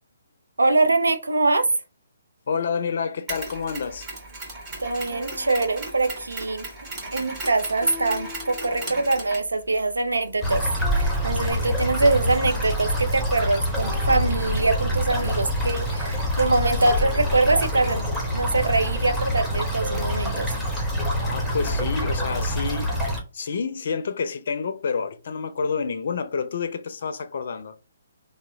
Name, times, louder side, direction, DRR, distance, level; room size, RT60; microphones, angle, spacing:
voice 1, 0.6-1.7 4.8-6.7 7.1-10.6 10.9-20.5, right 2 dB, 80° right, 0.5 m, -23 dB
voice 2, 2.5-4.1 21.2-23.0 23.3-27.7, left 5 dB, 55° left, 0.5 m, -28 dB
Mechanisms, 3.3-11.5, right 2 dB, 25° right, 1.5 m, -37 dB
sound 1, 5.1-6.7 7.8-9.3 10.8-12.5 13.8-15.3 16.8-18.6 19.8-20.9, right 1 dB, 40° right, 1.5 m, -42 dB
sound 2, 10.4-23.2, equal, ahead, 0.9 m, -26 dB
3.0 x 2.1 x 3.4 m
figure-of-eight pair, 135°, 0 cm